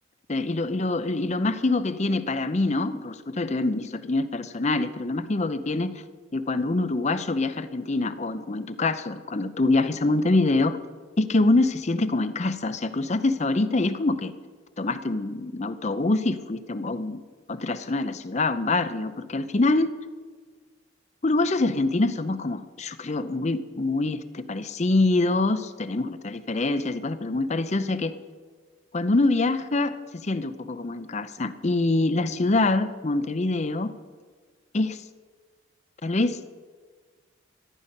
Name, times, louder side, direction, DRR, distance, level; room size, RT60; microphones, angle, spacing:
voice 1, 0.3-6.0 6.3-10.8 11.2-14.3 14.8-17.2 17.5-19.9 21.2-28.1 28.9-33.9 34.7-35.0 36.0-36.4, left 2 dB, 35° left, 12 dB, 0.6 m, -25 dB
14.0 x 12.5 x 5.3 m, 1.5 s
head